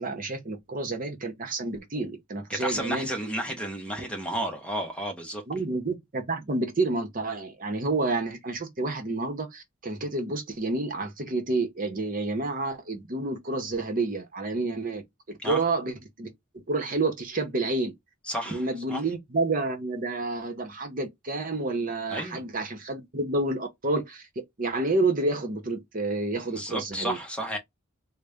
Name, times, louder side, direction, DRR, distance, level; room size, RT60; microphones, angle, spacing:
voice 1, 0.0-3.1 5.5-15.0 15.4-18.0 18.5-24.2 24.6-27.2, right 2 dB, 45° right, 0.9 m, -29 dB
voice 2, 2.5-5.4 15.4-15.6 18.3-18.6 18.9-19.0 22.1-22.4 26.5-27.6, right 1 dB, 5° left, 0.9 m, -32 dB
4.0 x 2.1 x 3.4 m
head